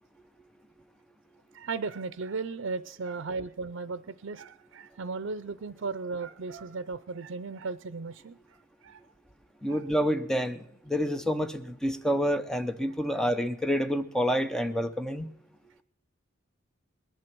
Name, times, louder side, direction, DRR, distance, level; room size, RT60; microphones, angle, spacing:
voice 1, 1.5-8.6 8.8-9.0 9.7-9.8 13.1-13.3, right 4 dB, 75° right, 14 dB, 0.5 m, -36 dB
voice 2, 9.6-15.3, equal, 5° left, 9 dB, 0.7 m, -28 dB
20.5 x 11.0 x 6.0 m, 0.74 s
head